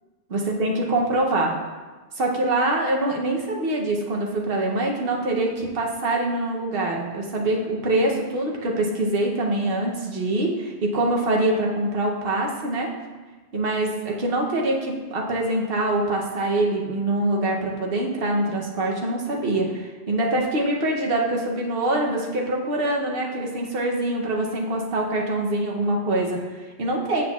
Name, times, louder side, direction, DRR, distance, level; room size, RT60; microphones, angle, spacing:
voice 1, 0.3-1.5 2.2-12.9 13.5-27.2, right 1 dB, 55° right, 0 dB, 1.0 m, -24 dB
7.5 x 6.2 x 2.4 m, 1.3 s
omnidirectional pair, 1.3 m